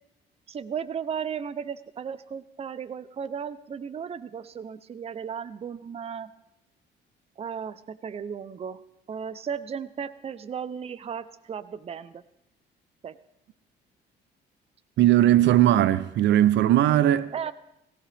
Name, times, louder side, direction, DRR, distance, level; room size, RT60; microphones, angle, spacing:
voice 1, 0.5-6.3 7.4-8.8 9.1-12.2 13.0-13.2 17.3-17.5, right 7 dB, 30° right, 0.6 m, -35 dB
voice 2, 15.0-17.5, right 13 dB, 70° right, 0.6 m, -19 dB
18.5 x 17.0 x 3.4 m
cardioid pair, 115°, 19 cm